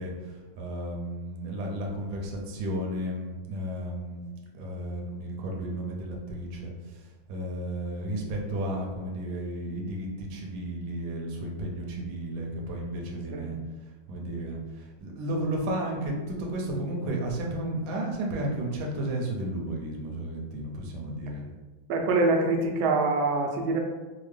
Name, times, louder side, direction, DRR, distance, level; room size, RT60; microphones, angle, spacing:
voice 1, 0.0-4.2 4.5-13.6 14.1-21.4, right 1 dB, 70° right, -1 dB, 1.1 m, -33 dB
voice 2, 21.9-23.8, right 3 dB, 90° right, 1 dB, 1.4 m, -24 dB
4.3 x 2.0 x 3.2 m, 1.3 s
omnidirectional pair, 2.1 m